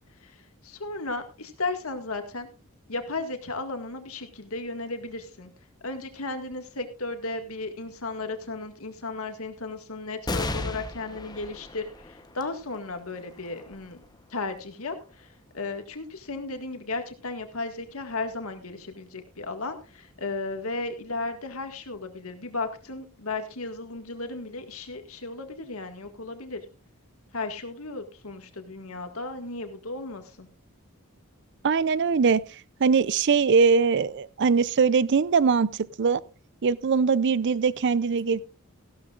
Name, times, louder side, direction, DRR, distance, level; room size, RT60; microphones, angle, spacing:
voice 1, 0.2-2.5 2.9-5.5 5.8-14.0 14.3-26.6 27.3-30.5, left 3 dB, 80° left, 1.9 m, -35 dB
sound 1, 10.2-17.1 17.7-17.8 19.0-19.5, left 2 dB, 20° left, 1.0 m, -38 dB
voice 2, 31.6-36.2 36.6-38.4, right 5 dB, 55° right, 0.5 m, -22 dB
16.0 x 12.0 x 2.5 m
head